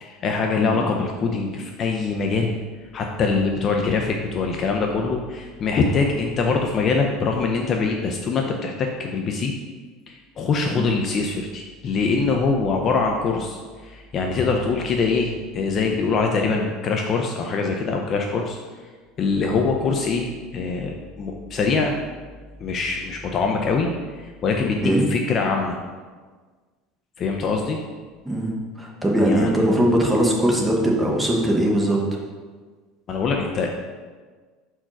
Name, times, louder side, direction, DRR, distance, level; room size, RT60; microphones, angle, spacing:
voice 1, 0.0-2.5 2.9-9.5 10.1-18.6 19.2-22.0 22.6-23.9 24.2-24.8 25.1-25.8 27.2-27.8 29.2-29.6 33.1-33.7, left 4 dB, 25° left, 2 dB, 0.4 m, -23 dB
voice 2, 28.2-32.0, right 1 dB, 5° right, -1 dB, 0.8 m, -20 dB
4.5 x 4.5 x 5.9 m, 1.5 s
cardioid pair, 175°, 0 cm